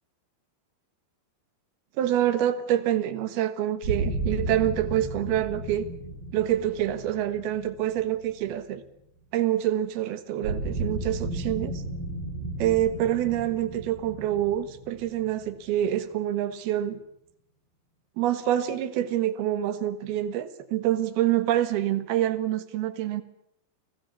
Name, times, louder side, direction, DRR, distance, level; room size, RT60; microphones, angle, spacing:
voice 1, 2.0-5.9 6.3-8.8 9.3-11.8 12.6-17.0 18.2-23.2, right 12 dB, 65° right, 12 dB, 3.0 m, -26 dB
sound 1, 3.8-8.8 10.4-16.1, right 2 dB, 40° right, 7.5 m, -34 dB
29.5 x 20.0 x 7.0 m, 0.75 s
omnidirectional pair, 5.5 m